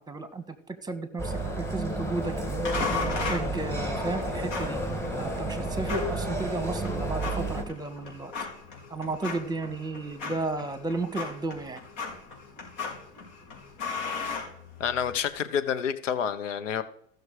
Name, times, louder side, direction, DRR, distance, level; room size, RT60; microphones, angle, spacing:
voice 1, 0.0-2.3 3.3-4.8 5.2-8.3 8.9-11.8, right 3 dB, 10° right, 12 dB, 1.5 m, -33 dB
sound 1, 1.2-7.6, right 1 dB, 5° left, 2.8 m, -31 dB
sound 2, 2.7-15.1, left 4 dB, 55° left, 4.8 m, -37 dB
voice 2, 14.8-16.8, left 8 dB, 85° left, 13 dB, 1.2 m, -28 dB
15.0 x 6.5 x 4.9 m, 0.66 s
hypercardioid pair, 105°, 36 cm